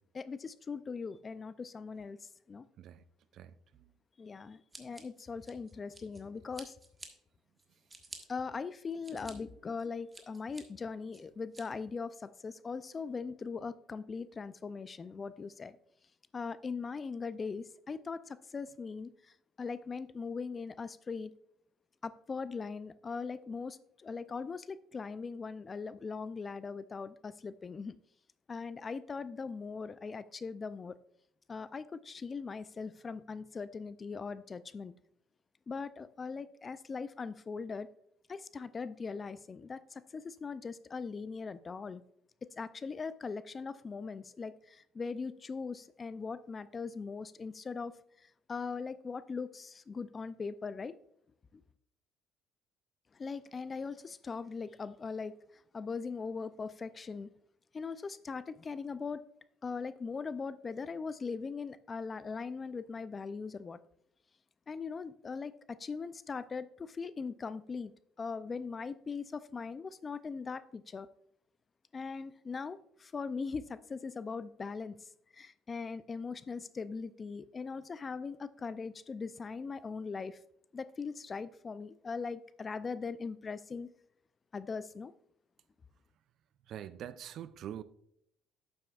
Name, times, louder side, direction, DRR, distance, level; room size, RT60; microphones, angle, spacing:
voice 1, 0.1-2.2 2.5-2.7 4.2-6.7 8.3-15.8 16.3-19.1 19.6-21.3 22.0-28.0 28.5-31.0 31.5-34.9 35.7-37.9 38.3-42.0 42.6-48.0 48.5-50.9 53.2-55.4 55.7-57.3 57.7-59.2 59.6-63.8 64.7-67.9 68.2-71.1 71.9-75.0 75.3-80.4 80.7-83.9 84.5-85.1, left 5 dB, 35° left, 0.4 m, -40 dB
Scissors, 4.7-6.2 6.5-7.1 7.6-8.2 8.7-9.3 9.8-10.6 11.1-11.6, right 3 dB, 20° right, 1.4 m, -50 dB
voice 2, 86.7-87.8, right 10 dB, 60° right, 0.4 m, -44 dB
11.0 x 7.7 x 2.4 m
supercardioid pair, 85°, 0 cm